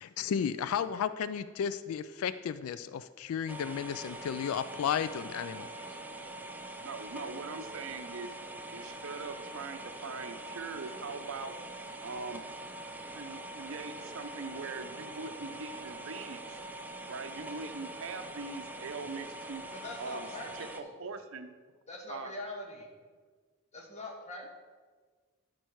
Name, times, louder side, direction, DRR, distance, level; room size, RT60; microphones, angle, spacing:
voice 1, 0.0-5.7, left 8 dB, 75° left, 14 dB, 0.3 m, -33 dB
sound 1, 3.5-20.8, right 1 dB, 10° right, 0.5 m, -44 dB
voice 2, 6.8-8.3 8.7-11.5 12.0-12.4 13.1-16.6 17.1-19.6 20.0-21.5 22.1-22.3, right 4 dB, 65° right, 8 dB, 0.7 m, -42 dB
voice 3, 19.7-21.0 21.9-22.9 23.7-24.5, left 2 dB, 35° left, 0 dB, 1.6 m, -43 dB
12.0 x 4.6 x 4.7 m, 1.5 s
head